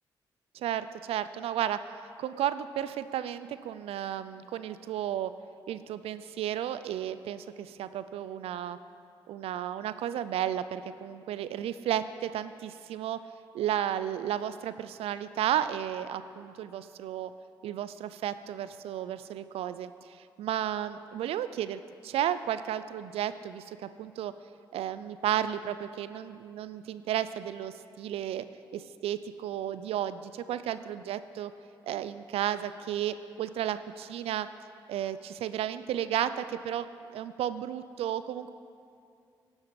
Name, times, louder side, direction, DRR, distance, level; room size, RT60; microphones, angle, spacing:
voice 1, 0.5-1.8 2.2-5.3 5.7-8.8 9.3-13.2 13.5-17.3 17.6-24.3 24.7-28.4 28.7-31.5 31.8-34.5 34.9-36.9 37.1-38.5, right 11 dB, 80° right, 13 dB, 0.4 m, -33 dB
11.5 x 7.0 x 5.2 m, 2.5 s
supercardioid pair, 55°, 10 cm